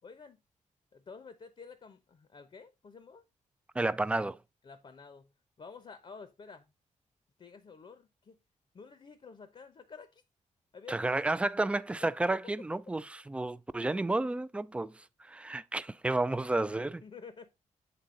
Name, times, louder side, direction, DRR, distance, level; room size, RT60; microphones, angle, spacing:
voice 1, 0.0-0.4 0.9-3.3 4.6-5.3 5.6-6.7 7.4-8.4 8.7-10.2 10.7-11.3 12.0-12.1 17.0-17.5, left 5 dB, 45° left, 0.8 m, -50 dB
voice 2, 3.7-4.4 10.9-17.0, right 2 dB, 10° right, 0.3 m, -31 dB
7.8 x 3.8 x 3.8 m
cardioid pair, 90°, 13 cm